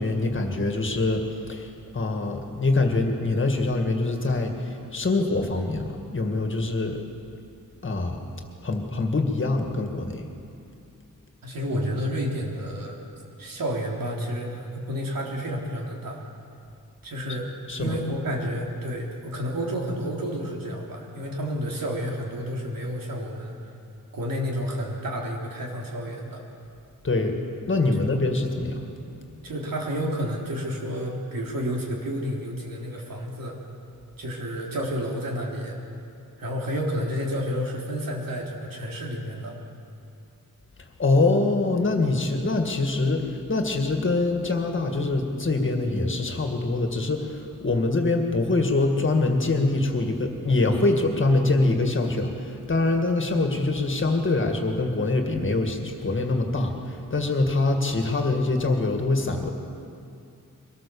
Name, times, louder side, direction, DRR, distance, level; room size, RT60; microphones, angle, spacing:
voice 1, 0.0-7.0 7.8-8.3 8.6-10.3 17.7-17.9 27.0-27.4 27.7-28.8 29.2-29.5 41.0-59.5, left 2 dB, 35° left, 3 dB, 2.0 m, -24 dB
voice 2, 11.4-13.0 13.4-16.2 17.0-17.5 17.8-23.5 24.1-26.4 29.4-33.6 34.2-35.8 36.4-39.6, equal, 80° right, -1 dB, 3.6 m, -30 dB
23.5 x 18.5 x 7.1 m, 2.6 s
wide cardioid pair, 165°, 34 cm